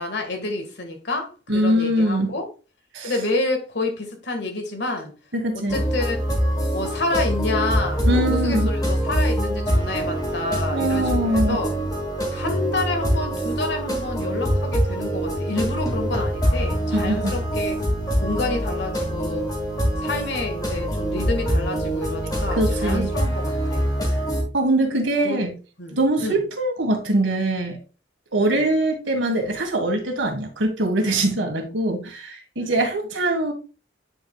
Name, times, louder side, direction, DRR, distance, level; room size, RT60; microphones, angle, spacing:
voice 1, 0.0-2.5 3.0-5.1 5.5-6.2 6.7-11.7 12.3-17.8 18.2-19.5 20.0-23.4 23.7-23.9 25.2-25.4 25.8-26.4 28.5-28.6 32.6-32.7, left 2 dB, 65° left, 1.8 m, -28 dB
voice 2, 1.5-2.3 2.9-3.1 5.3-5.7 8.1-8.7 10.7-11.6 16.9-17.3 22.6-23.1 24.5-25.5 25.9-27.8 28.3-33.5, right 1 dB, 85° right, 1.9 m, -22 dB
sound 1, 5.7-24.4, equal, 20° left, 2.4 m, -24 dB
9.5 x 5.2 x 2.4 m
head